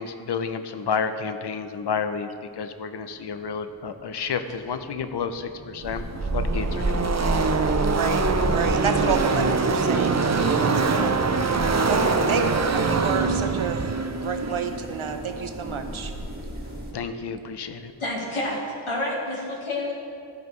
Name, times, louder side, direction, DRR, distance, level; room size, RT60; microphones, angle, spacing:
voice 1, 0.0-2.3 2.6-6.0 6.3-7.3 12.0-12.4 16.9-17.9, left 6 dB, 60° left, 9 dB, 0.6 m, -30 dB
Car passing by / Race car auto racing, 5.4-16.0, right 4 dB, 35° right, 0.5 m, -24 dB
sound 1, 5.8-16.9, right 1 dB, 20° right, 1.5 m, -32 dB
voice 2, 7.9-8.2 8.5-11.2 11.9-12.4 12.7-13.9 14.2-16.1, right 5 dB, 80° right, 6 dB, 0.7 m, -29 dB
voice 3, 18.0-19.9, left 1 dB, 85° left, -3 dB, 1.6 m, -29 dB
13.5 x 5.1 x 3.1 m, 2.5 s
wide cardioid pair, 45°, 48 cm